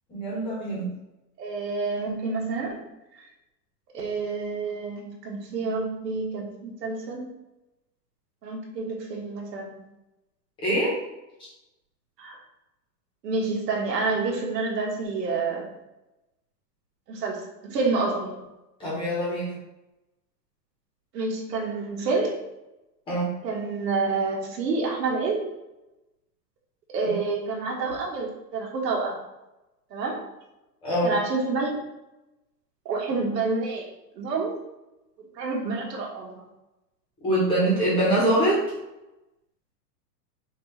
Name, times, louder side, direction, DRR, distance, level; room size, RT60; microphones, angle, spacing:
voice 1, 0.1-0.9 10.6-11.0 18.8-19.6 23.1-23.3 27.0-27.1 30.8-31.1 37.2-38.6, right 1 dB, 10° left, -7 dB, 1.2 m, -24 dB
voice 2, 1.4-2.8 3.2-3.3 3.9-7.3 8.4-9.7 12.2-12.4 13.2-15.6 17.1-18.4 21.1-22.4 23.4-25.5 26.9-29.2 29.9-30.2 31.0-31.8 32.8-33.9 34.1-34.5 35.3-36.5, right 3 dB, 75° right, -1 dB, 1.6 m, -28 dB
5.6 x 2.8 x 3.3 m, 0.95 s
supercardioid pair, 175°, 50 cm